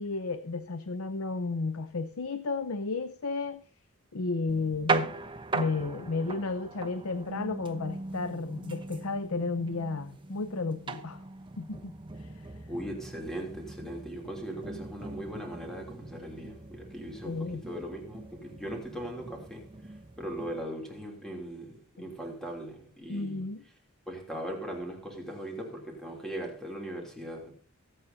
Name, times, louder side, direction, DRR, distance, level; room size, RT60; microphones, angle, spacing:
voice 1, 0.0-3.7 4.1-5.1 5.5-11.2 11.6-11.9 12.2-12.5 17.2-17.6 23.1-23.6, left 3 dB, 70° left, 0.7 m, -33 dB
sound 1, 4.5-20.6, right 3 dB, 25° right, 0.9 m, -39 dB
voice 2, 12.7-19.7 20.2-23.5 24.1-27.5, right 1 dB, ahead, 3.0 m, -39 dB
24.0 x 8.2 x 2.8 m
head